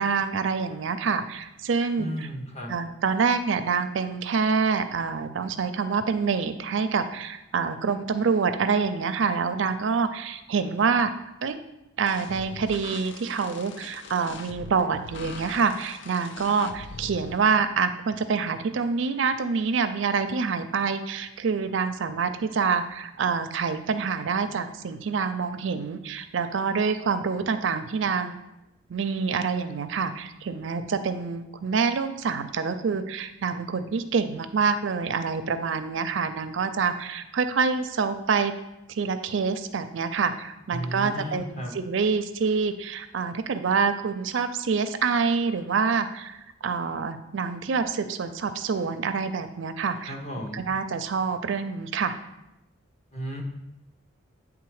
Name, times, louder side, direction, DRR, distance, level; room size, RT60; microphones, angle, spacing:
voice 1, 0.0-2.3 2.7-11.1 11.4-11.6 12.0-28.3 28.9-38.5 38.9-50.2 50.5-52.2, right 5 dB, 65° right, 10 dB, 0.4 m, -26 dB
voice 2, 2.0-2.7 40.7-41.7 50.1-50.6 53.1-53.4, equal, 30° left, -1 dB, 1.1 m, -34 dB
sound 1, 12.1-17.4, left 4 dB, 60° left, 0.4 m, -42 dB
8.5 x 3.6 x 4.8 m, 0.90 s
head